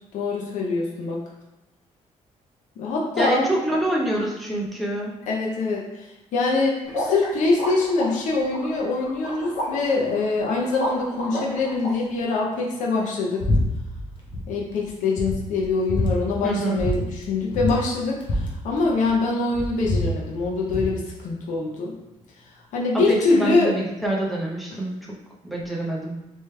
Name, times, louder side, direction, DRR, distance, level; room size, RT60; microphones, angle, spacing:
voice 1, 0.1-1.2 2.8-3.5 5.3-13.4 14.5-21.9 22.7-23.7 24.7-24.8, left 3 dB, 80° left, -2 dB, 0.7 m, -24 dB
voice 2, 3.2-5.1 16.4-16.8 23.1-25.2 25.4-26.2, right 1 dB, ahead, -3 dB, 0.7 m, -26 dB
sound 1, 6.9-11.9, equal, 60° left, 1.3 m, -31 dB
sound 2, 13.4-13.6 13.9-14.4 14.8-14.9 15.2-16.1 16.8-17.0 17.2-17.3 17.5-19.2 19.5-20.9, left 2 dB, 40° left, 0.7 m, -25 dB
3.2 x 3.2 x 3.3 m, 0.98 s
cardioid pair, 160°, 13 cm